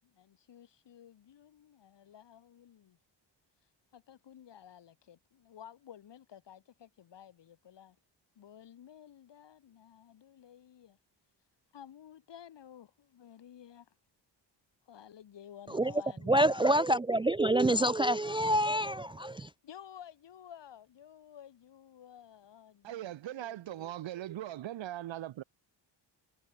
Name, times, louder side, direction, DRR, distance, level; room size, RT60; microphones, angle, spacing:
voice 1, 0.0-3.0 3.9-8.0 8.3-11.0 11.7-13.9 14.9-16.5 19.6-24.1, left 9 dB, 70° left, 7.8 m, -53 dB
voice 2, 16.3-19.5, right 1 dB, 10° right, 0.4 m, -27 dB
voice 3, 22.8-25.4, right 13 dB, 80° right, 1.2 m, -40 dB
wide cardioid pair, 170°, 45 cm